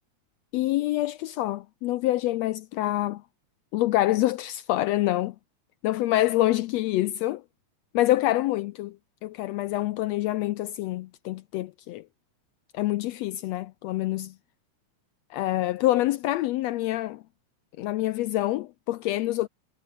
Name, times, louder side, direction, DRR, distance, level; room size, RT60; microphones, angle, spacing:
voice 1, 0.5-3.2 3.7-5.3 5.8-7.4 7.9-9.0 9.2-12.1 12.7-14.3 15.3-17.2 17.8-19.5, left 16 dB, 80° left, 1.6 m, -26 dB
omnidirectional pair, 3.5 m